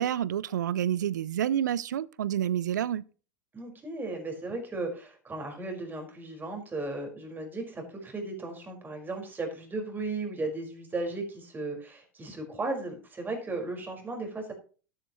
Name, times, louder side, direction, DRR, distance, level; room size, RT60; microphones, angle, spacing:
voice 1, 0.0-3.0, right 10 dB, 75° right, 0.5 m, -28 dB
voice 2, 3.5-14.5, right 2 dB, 20° right, 5.1 m, -36 dB
13.0 x 11.0 x 3.1 m
hypercardioid pair, 90°, 10 cm